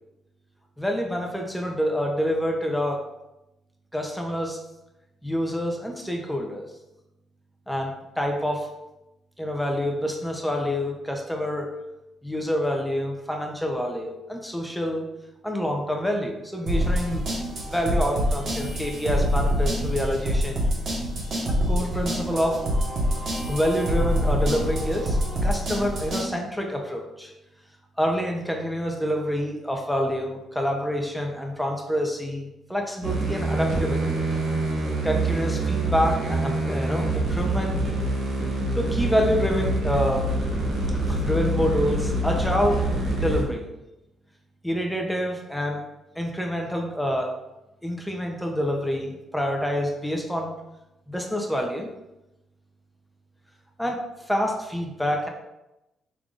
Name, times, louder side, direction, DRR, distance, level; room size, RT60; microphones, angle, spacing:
voice 1, 0.8-3.0 3.9-4.6 5.2-6.7 7.7-8.7 9.4-11.7 12.2-15.1 15.4-17.2 17.7-20.6 21.5-22.6 23.5-27.3 28.0-34.2 35.0-37.9 38.8-40.3 41.1-42.9 43.2-43.7 44.6-45.8 46.2-47.3 47.8-50.5 51.1-51.9 53.8-54.0 54.3-55.3, equal, 5° left, 1 dB, 0.6 m, -27 dB
sound 1, 16.7-26.3, equal, 55° right, 1.4 m, -25 dB
sound 2, 33.0-43.4, right 2 dB, 80° right, 1.2 m, -25 dB
5.2 x 3.5 x 2.4 m, 0.95 s
cardioid pair, 90°, 0 cm